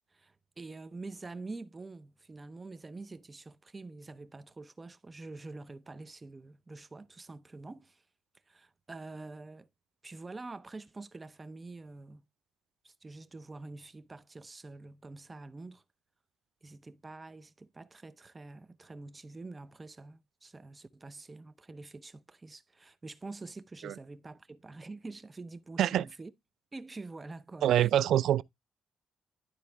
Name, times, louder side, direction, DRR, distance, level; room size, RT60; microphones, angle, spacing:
voice 1, 0.1-8.0 8.5-9.7 10.0-12.3 12.8-15.8 16.6-26.3 26.7-27.9, right 3 dB, 25° right, 0.7 m, -46 dB
voice 2, 27.6-28.4, right 11 dB, 75° right, 0.4 m, -25 dB
11.5 x 4.1 x 3.4 m
cardioid pair, 90°, 0 cm